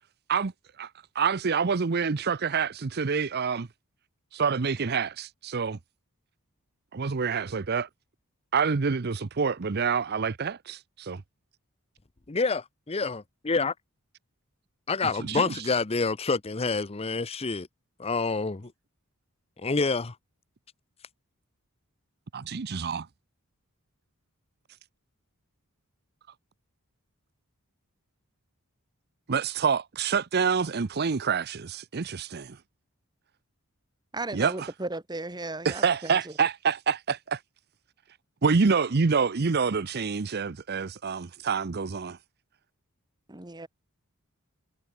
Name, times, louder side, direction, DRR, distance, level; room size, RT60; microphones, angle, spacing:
voice 1, 1.1-3.7 4.3-5.8 6.9-7.9 8.5-11.2 15.0-15.6 22.3-23.1 29.3-32.6 34.3-34.7 35.6-37.4 38.4-42.2, right 5 dB, 45° right, 0.6 m, -27 dB
voice 2, 12.3-13.7 14.9-17.7 18.0-18.7 19.6-20.1, left 4 dB, 25° left, 0.7 m, -27 dB
voice 3, 34.1-35.8 43.3-43.7, right 2 dB, 20° right, 1.4 m, -35 dB
head